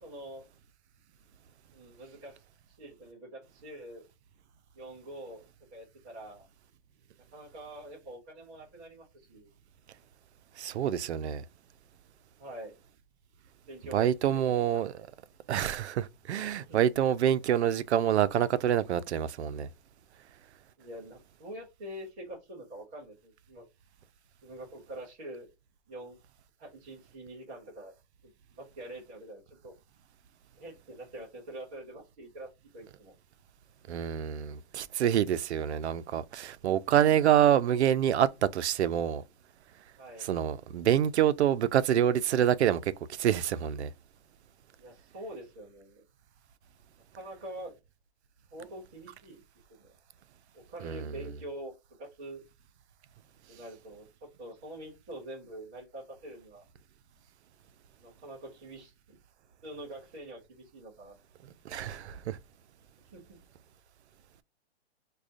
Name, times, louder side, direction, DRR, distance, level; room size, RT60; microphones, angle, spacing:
voice 1, 0.0-0.4 1.7-2.4 2.8-4.1 4.7-5.4 5.7-6.5 7.3-9.5 12.4-12.8 13.7-15.1 16.6-16.8 20.8-23.7 24.4-25.5 25.9-26.2 26.6-27.9 28.6-29.7 30.6-33.1 40.0-40.3 44.8-46.0 47.1-47.7 48.5-49.4 49.7-49.9 50.5-52.4 53.5-56.7 58.0-59.2 59.6-61.2 63.1-63.4, right 1 dB, 5° right, 0.3 m, -45 dB
voice 2, 10.6-11.4 13.9-15.1 15.5-19.7 33.9-39.2 40.3-42.9 43.2-43.9 50.8-51.1 61.7-62.4, right 10 dB, 85° right, 0.5 m, -26 dB
4.9 x 2.3 x 2.5 m
hypercardioid pair, 155°, 33 cm